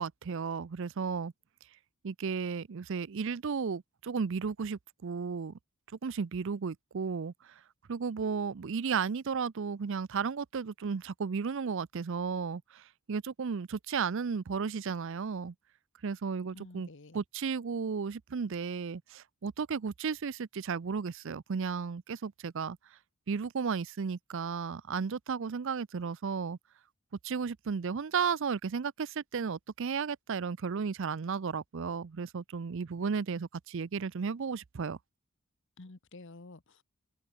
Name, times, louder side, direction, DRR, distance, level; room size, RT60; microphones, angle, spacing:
voice 1, 0.0-1.3 2.0-5.5 6.0-7.3 7.9-12.8 13.1-15.5 16.0-16.9 17.1-22.8 23.3-26.6 27.2-35.0, right 5 dB, 60° right, 0.5 m, -34 dB
voice 2, 16.5-17.2 35.8-36.8, left 2 dB, 55° left, 1.1 m, -50 dB
head